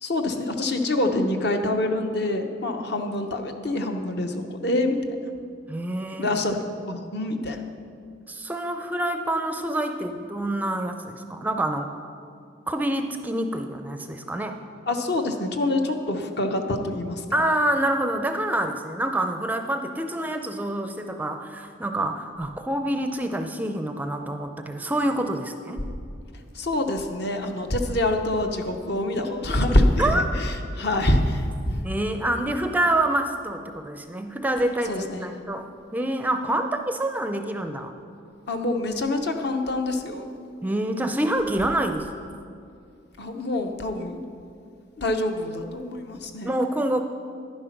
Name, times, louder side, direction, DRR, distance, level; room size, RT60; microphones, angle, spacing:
voice 1, 0.0-5.0 6.2-6.6 6.9-7.6 14.9-17.2 26.5-31.8 34.9-35.3 38.5-40.3 43.2-44.2 45.0-46.6, left 1 dB, 55° left, 5 dB, 0.9 m, -25 dB
voice 2, 5.7-6.4 8.3-11.9 12.7-14.6 17.3-25.8 30.0-30.2 31.8-37.9 40.6-42.1 46.4-47.0, right 1 dB, 10° right, 6 dB, 0.4 m, -27 dB
11.0 x 10.0 x 5.9 m, 2.4 s
head